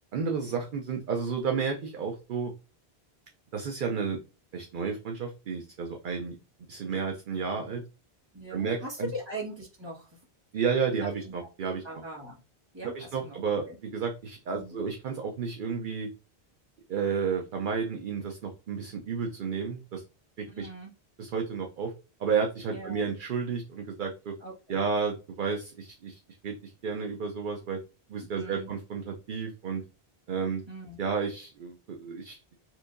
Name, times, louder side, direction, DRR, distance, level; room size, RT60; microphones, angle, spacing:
voice 1, 0.1-2.5 3.5-4.2 4.5-6.4 6.7-7.8 8.5-9.1 10.5-11.8 12.8-16.1 16.9-20.0 20.4-20.7 21.2-21.9 22.2-24.3 24.7-27.8 28.1-29.8 30.3-30.6 31.0-32.4, right 5 dB, 60° right, 3 dB, 0.7 m, -31 dB
voice 2, 8.3-10.2 10.9-11.5 11.8-12.4 12.7-13.4 13.7-13.8 14.5-14.8 20.5-20.9 22.7-23.1 24.4-24.8 28.4-28.7 30.7-31.0, right 1 dB, 25° right, -4 dB, 1.3 m, -40 dB
4.4 x 2.7 x 2.5 m, 0.32 s
omnidirectional pair, 1.1 m